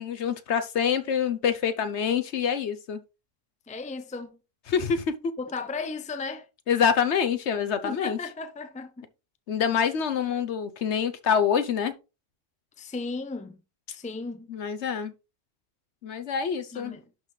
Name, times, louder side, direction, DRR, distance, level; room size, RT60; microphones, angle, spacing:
voice 1, 0.0-3.0 4.7-5.3 6.7-8.2 9.5-11.9 14.5-15.1 16.0-16.9, left 7 dB, 65° left, 1.0 m, -26 dB
voice 2, 3.7-4.4 5.4-6.5 7.8-9.1 9.7-9.8 12.8-13.6 13.9-14.5 16.7-17.0, left 3 dB, 10° left, 0.6 m, -35 dB
11.5 x 4.0 x 3.2 m
omnidirectional pair, 1.3 m